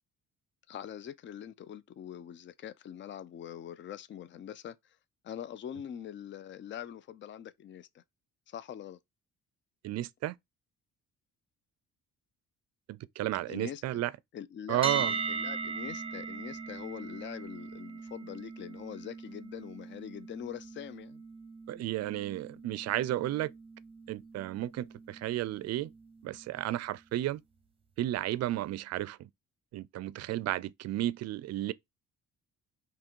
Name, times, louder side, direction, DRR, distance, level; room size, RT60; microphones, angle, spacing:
voice 1, 0.7-5.0 5.2-8.0 8.5-9.0 13.5-14.0 14.3-21.2, left 9 dB, 40° left, 0.4 m, -43 dB
voice 2, 9.8-10.3 12.9-14.1 14.7-15.1 21.7-23.5 24.1-25.9 26.2-27.4 28.0-29.3 29.7-31.7, right 14 dB, 60° right, 0.4 m, -33 dB
sound 1, 14.8-26.7, right 4 dB, 20° right, 0.9 m, -40 dB
3.6 x 3.0 x 4.4 m
cardioid pair, 110°, 30 cm